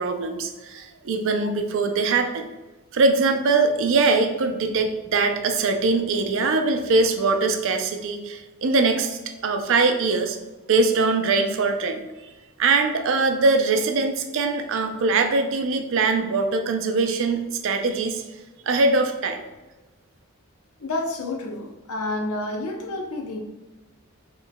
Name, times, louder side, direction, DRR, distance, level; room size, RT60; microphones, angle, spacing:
voice 1, 0.0-2.5 2.9-10.4 10.7-12.0 12.6-18.2 18.7-19.4, right 3 dB, 60° right, 0.4 m, -22 dB
voice 2, 20.8-23.4, left 2 dB, 85° left, 0.6 m, -29 dB
4.4 x 3.1 x 2.2 m
head